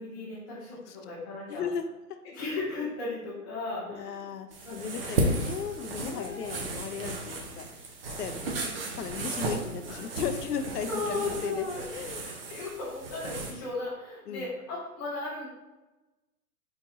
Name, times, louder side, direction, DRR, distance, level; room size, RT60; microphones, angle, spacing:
voice 1, 0.0-1.6 2.2-4.3 4.6-5.1 6.0-6.6 8.4-8.7 9.9-10.0 10.6-11.9 12.2-15.5, left 3 dB, 15° left, -11 dB, 0.5 m, -36 dB
voice 2, 1.5-2.2 3.9-7.7 8.2-12.2 14.3-14.5, left 7 dB, 80° left, 8 dB, 0.6 m, -36 dB
sound 1, 4.5-13.5, right 2 dB, 40° right, 0.7 m, -34 dB
4.4 x 3.9 x 2.7 m, 1.1 s
hypercardioid pair, 150°, 47 cm